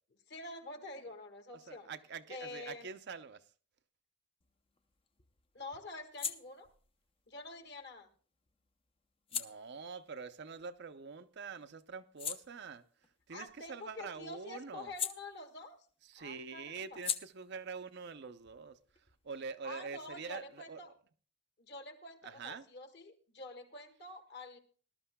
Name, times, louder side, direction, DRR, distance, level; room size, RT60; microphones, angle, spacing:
voice 1, 0.3-1.9 2.3-2.9 5.5-6.7 7.3-8.1 13.3-15.8 16.2-17.0 19.6-20.9 21.6-24.6, left 2 dB, 50° left, 1.6 m, -47 dB
voice 2, 1.5-3.4 9.3-12.8 13.3-14.9 16.1-18.8 19.2-20.9 22.2-22.6, right 5 dB, 50° right, 0.5 m, -45 dB
sound 1, 4.4-11.3 11.7-15.9 16.2-19.6, left 7 dB, 25° left, 0.5 m, -45 dB
20.0 x 12.0 x 2.2 m
head